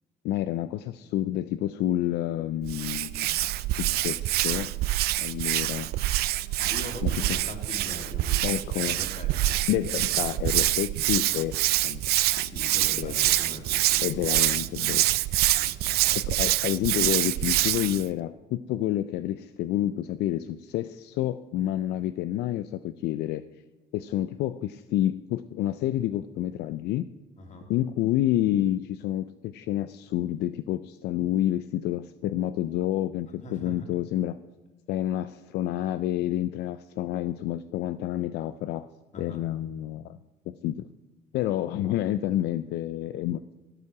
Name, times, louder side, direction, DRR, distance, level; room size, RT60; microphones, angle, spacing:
voice 1, 0.2-3.4 3.7-4.7 5.2-5.9 7.0-7.4 8.4-9.0 9.7-12.5 13.0-13.2 14.0-15.0 16.1-23.4 23.9-27.0 27.7-34.4 34.9-38.9 39.2-40.2 40.5-40.9 41.3-43.4, left 13 dB, 75° left, 12 dB, 0.4 m, -29 dB
Hands, 2.6-18.1, right 15 dB, 70° right, 0.4 m, -26 dB
voice 2, 5.5-5.8 6.4-9.6 12.4-14.4 14.8-15.1 15.6-15.9 27.4-27.7 33.4-33.9 39.1-39.4, left 2 dB, 45° left, 3 dB, 2.4 m, -42 dB
12.5 x 8.6 x 4.8 m, 1.2 s
cardioid pair, 110°, 17 cm